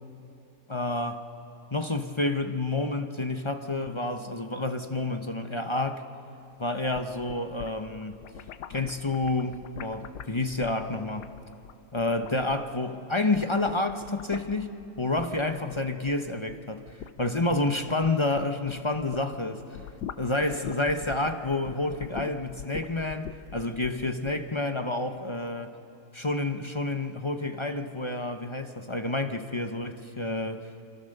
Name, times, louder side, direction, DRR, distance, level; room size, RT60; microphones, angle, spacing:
voice 1, 0.7-1.3 1.7-6.0 6.6-8.2 8.7-11.3 11.9-19.8 20.2-25.7 26.1-30.7, left 2 dB, 25° left, 7 dB, 0.7 m, -29 dB
sound 1, 6.7-13.0 13.2-19.3 19.6-24.4, left 9 dB, 85° left, 1.4 m, -43 dB
27.5 x 25.0 x 6.7 m, 2.6 s
omnidirectional pair, 1.7 m